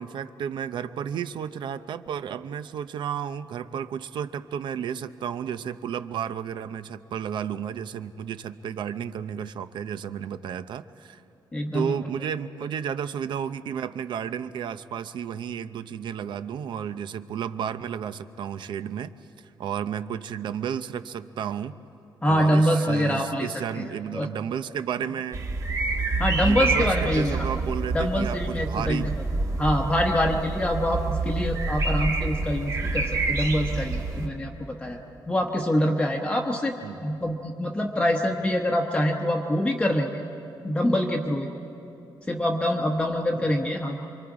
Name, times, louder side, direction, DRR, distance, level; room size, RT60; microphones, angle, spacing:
voice 1, 0.0-11.2 11.7-21.8 22.3-25.4 26.4-29.2 36.8-37.0, right 8 dB, 70° right, 13 dB, 0.6 m, -32 dB
voice 2, 11.5-12.0 22.2-23.9 24.1-24.3 26.2-27.5 27.9-29.1 29.6-35.0 35.3-36.7 37.0-40.2 40.6-41.5 42.3-44.0, equal, 15° left, 0 dB, 0.9 m, -25 dB
sound 1, 25.3-34.3, right 3 dB, 40° right, 1.5 m, -27 dB
27.5 x 24.0 x 4.9 m, 2.9 s
wide cardioid pair, 165°, 8 cm